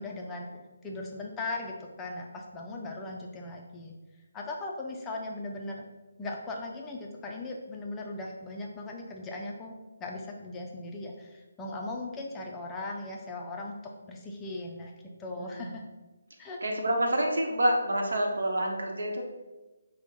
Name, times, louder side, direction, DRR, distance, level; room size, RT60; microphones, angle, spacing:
voice 1, 0.0-3.9 4.3-5.8 6.2-9.7 10.0-14.9 15.2-15.8 16.4-16.6, left 2 dB, 10° left, -1 dB, 0.4 m, -38 dB
voice 2, 15.4-15.7 16.6-19.2, right 1 dB, 75° right, 1 dB, 0.8 m, -28 dB
4.4 x 2.1 x 4.2 m, 1.2 s
figure-of-eight pair, 155°, 0 cm